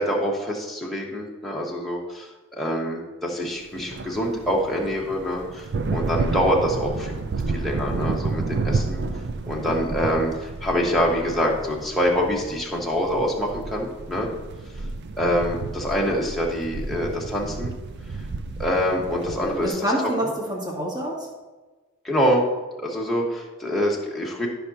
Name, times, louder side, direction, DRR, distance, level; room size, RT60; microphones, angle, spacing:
voice 1, 0.0-2.3 2.6-9.0 9.4-14.3 15.2-17.7 18.6-19.9 20.2-20.3 22.0-22.4 22.8-24.5, equal, ahead, -3 dB, 1.3 m, -25 dB
sound 1, 3.7-19.7, right 3 dB, 50° right, 0.5 m, -31 dB
voice 2, 19.4-21.3, equal, 20° right, -5 dB, 2.3 m, -27 dB
13.5 x 5.8 x 2.8 m, 1.2 s
head